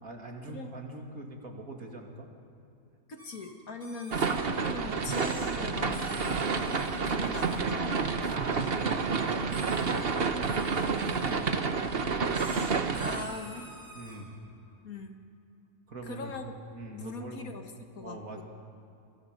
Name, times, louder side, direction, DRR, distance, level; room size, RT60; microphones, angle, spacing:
voice 1, 0.0-2.3 8.3-12.3 13.9-14.4 15.9-16.3 16.7-17.5 18.0-18.4, right 2 dB, 60° right, 2 dB, 2.9 m, -42 dB
voice 2, 3.1-6.7 7.0-8.7 10.1-10.3 13.0-13.7 14.8-15.2 16.0-16.5 16.9-18.4, left 3 dB, 65° left, 5 dB, 2.1 m, -41 dB
sound 1, 3.2-3.5 3.8-4.4 5.0-5.5 5.9-7.0 7.3-7.6 8.7-9.0 9.5-10.1 10.4-11.4 12.3-14.2, equal, 5° right, 7.7 m, -47 dB
sound 2, 4.1-13.2, right 5 dB, 40° right, 1.2 m, -29 dB
27.5 x 22.5 x 5.3 m, 2.8 s
omnidirectional pair, 1.6 m